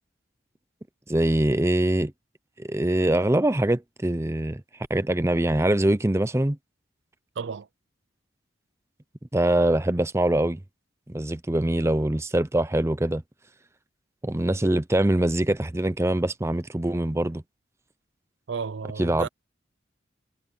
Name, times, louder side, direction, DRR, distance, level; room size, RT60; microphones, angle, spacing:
voice 1, 1.1-2.1 2.6-4.6 4.9-6.6 9.3-10.6 11.1-13.2 14.2-17.4 19.0-19.3, right 1 dB, 15° right, 0.6 m, -23 dB
voice 2, 7.4-7.7 18.5-19.3, right 5 dB, 70° right, 0.5 m, -32 dB
head